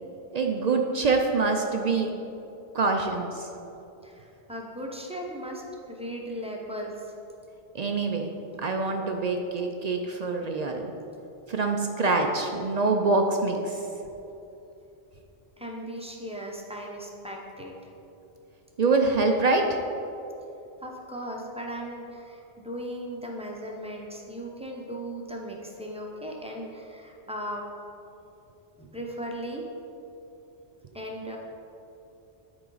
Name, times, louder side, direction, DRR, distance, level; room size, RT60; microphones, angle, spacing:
voice 1, 0.3-2.1 2.7-3.5 7.7-8.3 8.6-10.8 11.5-13.8 18.8-19.8, right 3 dB, 55° right, 3 dB, 0.5 m, -25 dB
voice 2, 4.0-7.2 15.6-17.7 20.8-27.6 28.8-29.7 30.9-31.4, equal, 5° right, -1 dB, 0.7 m, -37 dB
10.0 x 4.8 x 3.9 m, 2.9 s
omnidirectional pair, 1.1 m